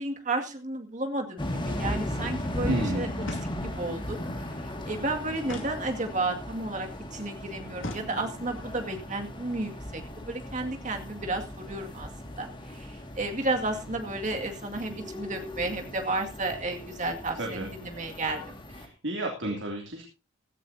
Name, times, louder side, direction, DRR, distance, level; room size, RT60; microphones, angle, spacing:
voice 1, 0.0-3.1 3.6-4.2 4.8-18.5, right 2 dB, 40° right, 3 dB, 2.2 m, -32 dB
sound 1, 1.4-18.9, left 1 dB, 25° left, 2.1 m, -37 dB
voice 2, 2.7-3.1 17.4-17.7 18.8-20.0, right 1 dB, 65° right, 1 dB, 2.9 m, -31 dB
sound 2, 3.2-4.0 5.4-6.4 7.8-8.6, left 2 dB, 70° left, 2.2 m, -40 dB
16.5 x 14.0 x 2.8 m, 0.31 s
head